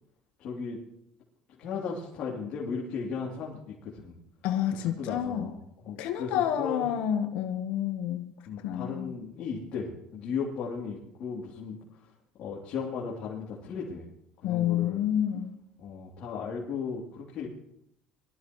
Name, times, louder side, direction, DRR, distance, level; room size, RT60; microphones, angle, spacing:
voice 1, 0.4-0.8 1.6-4.2 5.0-5.6 5.9-6.9 8.5-11.8 12.4-14.0 14.4-15.0 15.8-17.5, left 5 dB, 50° left, -4 dB, 3.0 m, -36 dB
voice 2, 4.4-5.5 5.9-8.3 8.6-9.1 14.4-15.6, left 10 dB, 70° left, 6 dB, 1.1 m, -29 dB
23.0 x 13.5 x 3.1 m, 0.79 s
cardioid pair, 145°, 2 cm